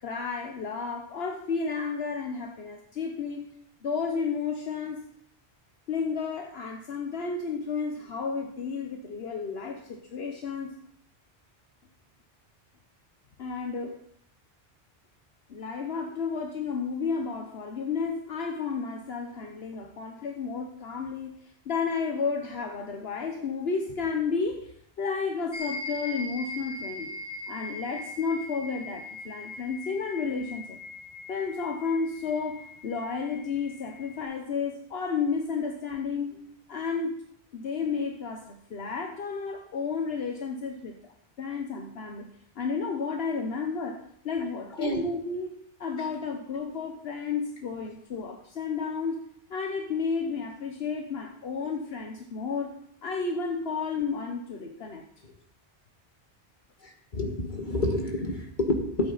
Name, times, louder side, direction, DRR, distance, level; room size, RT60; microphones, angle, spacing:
voice 1, 0.0-3.5 3.8-5.0 5.9-10.8 13.4-14.0 15.5-21.3 21.6-27.1 27.5-30.8 31.3-37.2 37.5-41.0 41.4-42.3 42.6-52.7 53.0-55.0, left 5 dB, 70° left, 3 dB, 1.2 m, -32 dB
sound 1, 25.5-34.2, left 2 dB, 25° left, 2.2 m, -41 dB
voice 2, 57.1-59.1, left 1 dB, 50° left, 2 dB, 1.8 m, -28 dB
13.5 x 8.1 x 4.1 m, 0.67 s
omnidirectional pair, 1.1 m